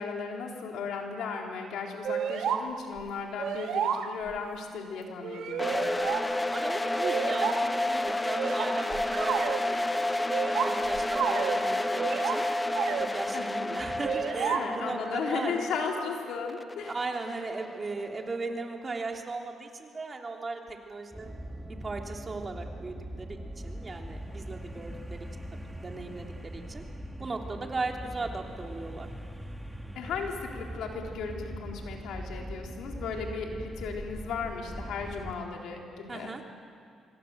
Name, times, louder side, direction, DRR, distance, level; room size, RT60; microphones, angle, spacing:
voice 1, 0.0-5.8 13.3-13.7 14.4-17.0 29.9-36.3, left 5 dB, 80° left, 1 dB, 3.9 m, -36 dB
sound 1, 2.0-2.6 3.0-3.1 3.4-4.4 5.2-6.2 7.0-7.6 8.4-9.6 10.3-11.6 12.0-12.4 12.7-13.1 14.0-14.6, right 8 dB, 75° right, 1.7 m, -31 dB
sound 2, 5.6-18.4, left 1 dB, 15° left, 0.9 m, -31 dB
voice 2, 6.5-10.4 10.6-12.4 13.0-15.7 16.9-21.3 21.8-25.3 25.8-26.8 27.2-29.1 36.1-36.4, right 3 dB, 30° right, 2 dB, 3.2 m, -37 dB
sound 3, 21.1-35.6 35.9-36.0, equal, 5° right, 2.2 m, -41 dB
26.5 x 24.0 x 8.0 m, 2.3 s
cardioid pair, 90°, 0 cm